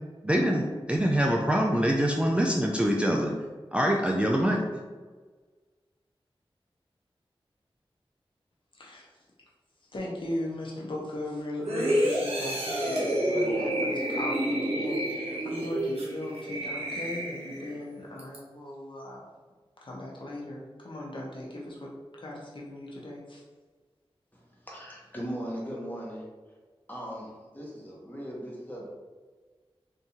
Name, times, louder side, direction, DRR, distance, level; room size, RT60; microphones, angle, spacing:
voice 1, 0.2-3.3 3.7-4.6, equal, 10° right, -1 dB, 0.3 m, -24 dB
voice 2, 8.8-9.1 9.9-19.3 19.8-23.4, left 1 dB, 55° left, -3 dB, 0.7 m, -38 dB
sound 1, 11.6-17.8 18.2-18.4, right 1 dB, 85° right, 0.8 m, -29 dB
voice 3, 24.3-26.2 26.9-28.9, equal, 20° left, -4 dB, 1.1 m, -38 dB
3.5 x 2.6 x 2.8 m, 1.4 s
wide cardioid pair, 65°, 10 cm